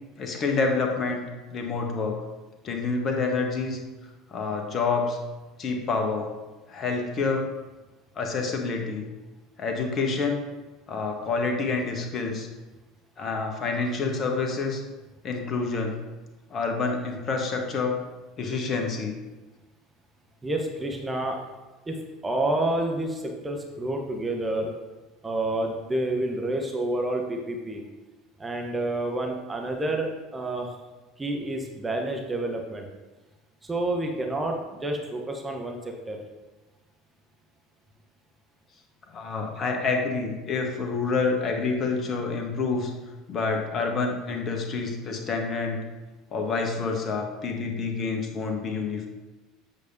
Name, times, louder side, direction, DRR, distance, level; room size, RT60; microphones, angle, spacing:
voice 1, 0.2-2.2 2.6-3.8 4.3-5.2 5.6-6.3 6.7-7.5 8.2-9.0 9.6-10.4 10.9-12.5 13.2-14.8 15.2-16.0 16.5-18.0 18.4-19.1 39.1-42.9 43.3-45.8 46.3-49.1, left 4 dB, 35° left, 3 dB, 1.3 m, -28 dB
voice 2, 20.4-21.4 21.9-22.0 22.2-24.7 25.2-27.8 28.4-30.1 30.3-30.7 31.2-32.9 33.7-36.2, right 1 dB, 15° right, 1 dB, 1.0 m, -29 dB
8.1 x 6.7 x 2.7 m, 1.2 s
figure-of-eight pair, 70°, 0 cm